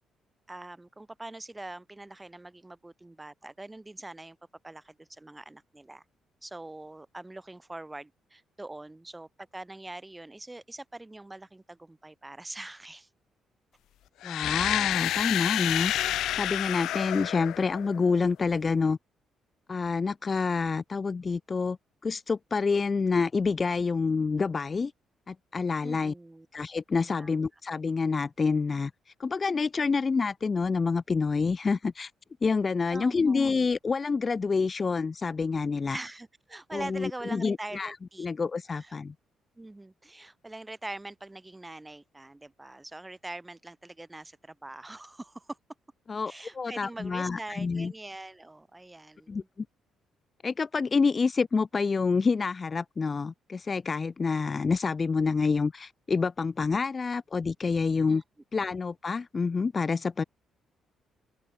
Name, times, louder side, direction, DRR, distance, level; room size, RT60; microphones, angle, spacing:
voice 1, 0.5-4.4 4.6-6.0 6.4-13.1 25.8-26.5 27.2-27.5 32.9-33.5 35.9-38.3 38.7-38.9 39.6-45.6 46.3-49.5 58.1-58.2, right 2 dB, 15° right, 5.6 m, -43 dB
sound 1, 14.2-18.1, left 13 dB, 80° left, 1.7 m, -29 dB
voice 2, 14.2-15.9 16.3-19.0 19.7-21.8 22.0-24.9 25.3-26.1 26.5-28.9 29.2-32.1 32.4-36.0 36.7-39.1 46.1-47.9 49.3-49.4 50.4-58.2 58.5-60.2, left 4 dB, 35° left, 0.7 m, -27 dB
open air
cardioid pair, 90°, 0 cm